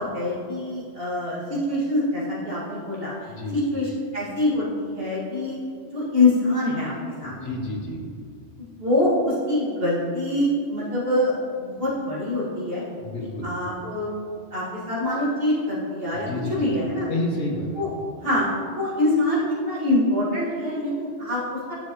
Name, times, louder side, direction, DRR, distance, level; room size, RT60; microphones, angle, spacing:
voice 1, 0.0-5.6 5.9-6.9 7.2-7.5 8.6-12.8 13.4-14.1 14.5-17.1 17.7-17.9 18.2-21.7, left 1 dB, 50° right, -8 dB, 2.5 m, -25 dB
voice 2, 7.2-8.0 13.0-13.5 16.1-16.7 17.1-17.8, left 2 dB, 70° left, 0 dB, 1.4 m, -30 dB
10.0 x 6.6 x 3.1 m, 2.2 s
omnidirectional pair, 1.2 m